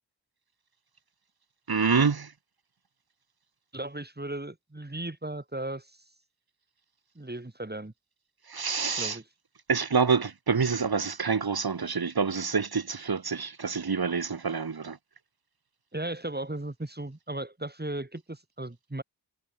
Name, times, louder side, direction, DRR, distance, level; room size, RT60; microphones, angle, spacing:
voice 1, 1.7-2.3 8.5-9.2 9.7-15.0, right 5 dB, 65° right, 1.7 m, -27 dB
voice 2, 3.7-6.0 7.1-7.9 9.0-9.2 15.9-19.0, right 1 dB, 25° right, 3.2 m, -36 dB
wide cardioid pair, 45°, 39 cm